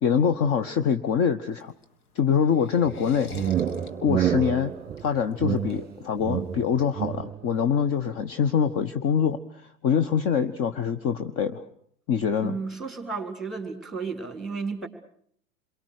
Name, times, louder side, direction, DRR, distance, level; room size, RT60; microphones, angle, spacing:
voice 1, 0.0-1.7 2.1-3.3 4.0-4.7 5.0-9.4 9.8-11.6 12.1-12.6, left 7 dB, 30° left, 10 dB, 1.1 m, -24 dB
sound 1, 1.5-6.6, left 3 dB, 70° left, 2.5 m, -45 dB
sound 2, 2.9-7.5, right 10 dB, 20° right, 1.6 m, -29 dB
voice 2, 12.4-14.9, right 4 dB, ahead, 6 dB, 3.9 m, -33 dB
28.0 x 23.0 x 6.5 m, 0.62 s
figure-of-eight pair, 95°, 45 cm